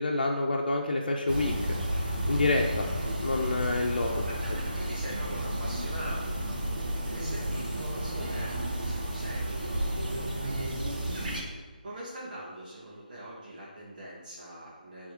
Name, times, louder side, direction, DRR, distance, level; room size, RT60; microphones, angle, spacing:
voice 1, 0.0-1.5 2.3-2.9 3.2-4.1, left 2 dB, 70° left, 0 dB, 0.8 m, -27 dB
sound 1, 1.3-11.4, right 1 dB, 65° right, 1.9 m, -32 dB
voice 2, 3.9-4.4 4.8-6.4 7.1-9.7 10.0-10.9 11.8-15.1, right 1 dB, 45° right, -8 dB, 1.9 m, -43 dB
7.8 x 3.5 x 5.1 m, 1.5 s
figure-of-eight pair, 155°, 5 cm